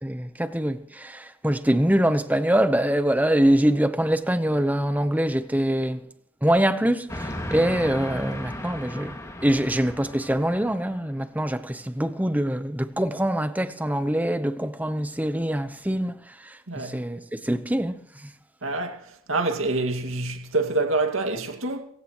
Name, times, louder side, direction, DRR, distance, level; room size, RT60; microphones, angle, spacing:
voice 1, 0.0-6.0 6.4-9.1 9.4-16.2 16.4-18.0, right 1 dB, 10° right, 0.9 m, -24 dB
Train, 7.1-11.0, left 1 dB, 15° left, 2.1 m, -35 dB
voice 2, 16.7-17.0 18.6-19.0 19.3-21.8, right 2 dB, 80° right, 2.3 m, -26 dB
23.5 x 16.0 x 3.1 m
head